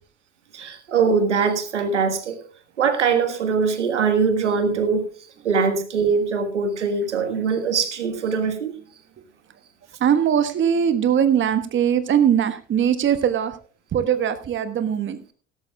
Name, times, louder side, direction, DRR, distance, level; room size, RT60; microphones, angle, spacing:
voice 1, 0.5-2.4 2.8-5.1 5.4-8.7, right 5 dB, 80° right, 9 dB, 1.7 m, -22 dB
voice 2, 10.0-13.5 13.9-15.2, right 9 dB, 35° right, 11 dB, 1.3 m, -20 dB
16.5 x 13.5 x 2.3 m, 0.39 s
figure-of-eight pair, 65°, 35 cm